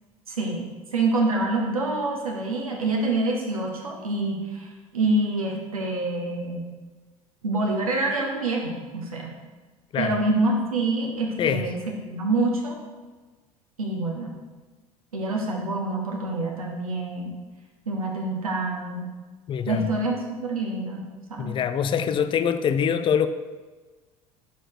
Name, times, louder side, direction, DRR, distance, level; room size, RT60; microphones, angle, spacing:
voice 1, 0.3-0.6 0.9-6.6 7.4-9.3 10.0-12.8 13.8-14.3 15.1-17.3 17.9-19.1 19.7-21.0 21.3-21.6, right 2 dB, 75° right, 0 dB, 0.9 m, -26 dB
voice 2, 19.5-19.9 21.4-23.3, left 8 dB, 25° left, 11 dB, 0.5 m, -24 dB
6.7 x 5.0 x 4.7 m, 1.3 s
figure-of-eight pair, 70°, 19 cm